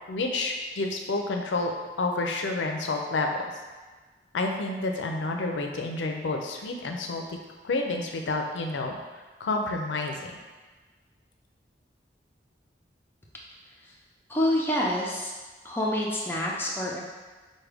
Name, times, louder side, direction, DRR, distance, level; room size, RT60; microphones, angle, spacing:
voice 1, 0.1-1.7 2.0-3.3 4.3-7.4 7.6-9.0 9.4-10.3, left 2 dB, 85° left, 3 dB, 0.5 m, -29 dB
voice 2, 14.3-15.3 15.6-17.0, left 1 dB, 10° left, -3 dB, 0.5 m, -27 dB
4.7 x 2.2 x 3.3 m, 1.3 s
head